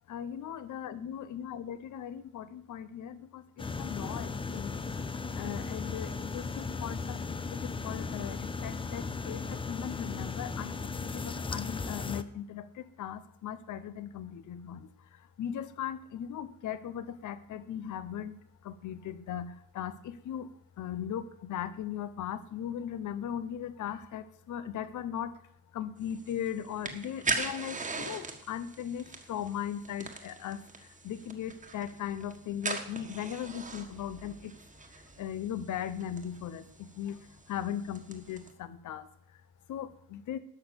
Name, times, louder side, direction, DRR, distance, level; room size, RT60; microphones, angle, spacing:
voice 1, 0.1-3.4 3.8-4.8 5.3-7.2 7.5-12.7 13.0-14.9 15.4-18.4 18.6-20.5 20.8-25.3 25.7-30.6 31.0-34.5 35.2-37.2 37.5-39.1 39.7-40.4, left 9 dB, 50° left, 14 dB, 0.9 m, -38 dB
sound 1, 3.6-12.2, left 4 dB, 15° left, 0.5 m, -36 dB
sound 2, 26.0-38.5, right 3 dB, 20° right, 1.6 m, -41 dB
12.0 x 6.1 x 8.1 m, 0.69 s
cardioid pair, 145°, 38 cm